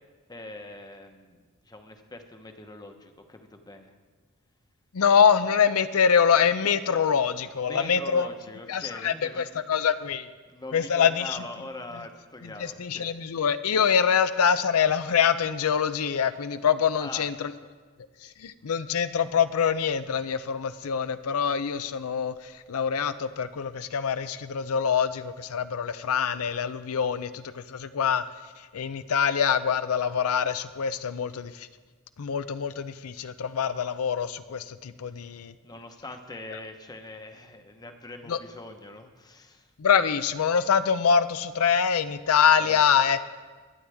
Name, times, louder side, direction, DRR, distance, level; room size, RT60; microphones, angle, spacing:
voice 1, 0.3-3.9 7.7-9.8 10.5-13.2 16.9-17.3 35.0-35.4 35.6-39.7 42.6-42.9, left 2 dB, 20° left, 5 dB, 1.0 m, -42 dB
voice 2, 4.9-8.3 8.7-10.3 10.7-11.4 12.4-17.5 18.2-28.2 28.7-31.7 32.2-35.5 38.3-38.4 39.8-43.3, left 7 dB, 75° left, 12 dB, 0.5 m, -25 dB
22.5 x 8.7 x 3.5 m, 1.4 s
head